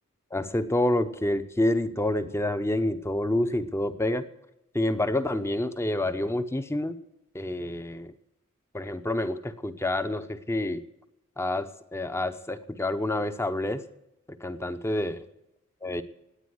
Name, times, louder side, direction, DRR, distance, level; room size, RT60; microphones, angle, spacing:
voice 1, 0.3-4.2 4.7-7.0 7.3-8.1 8.7-10.8 11.4-13.8 14.3-15.2 15.8-16.0, left 1 dB, 10° left, 11 dB, 0.8 m, -28 dB
18.0 x 8.9 x 7.9 m, 0.86 s
head